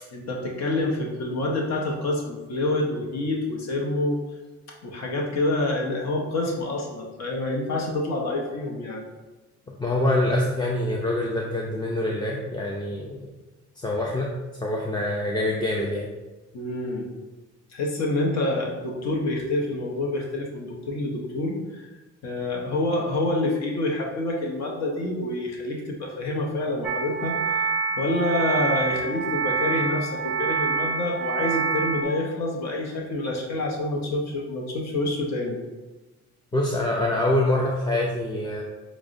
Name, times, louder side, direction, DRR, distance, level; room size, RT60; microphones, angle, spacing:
voice 1, 0.1-4.2 4.8-9.0 16.5-17.1 17.7-21.9 22.2-27.7 28.0-35.6, left 2 dB, 60° left, -1 dB, 0.8 m, -27 dB
voice 2, 9.8-13.1 13.8-14.3 14.6-16.1 36.5-38.6, left 1 dB, 15° left, -2 dB, 0.4 m, -25 dB
sound 1, 26.8-32.0, right 5 dB, 40° right, 0.5 m, -26 dB
5.8 x 2.0 x 2.5 m, 1.2 s
cardioid pair, 90°, 30 cm